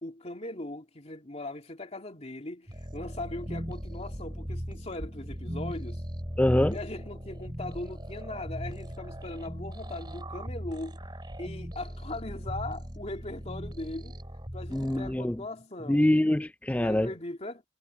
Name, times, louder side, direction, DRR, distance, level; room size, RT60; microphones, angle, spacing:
voice 1, 0.0-6.0 6.7-11.0 11.4-14.2 14.5-16.1 16.8-17.6, left 2 dB, 35° left, 2.6 m, -39 dB
sound 1, 2.7-15.2, equal, 25° right, 3.1 m, -38 dB
sound 2, 4.1-4.2 5.0-5.4 6.2-6.6 7.4-7.8 8.6-9.0 9.8-10.2 11.0-11.4 12.3-12.7 13.6-14.0 14.7-15.2, equal, 50° right, 7.9 m, -45 dB
voice 2, 6.4-6.8 14.7-15.4 15.9-17.1, left 1 dB, 5° left, 0.4 m, -25 dB
head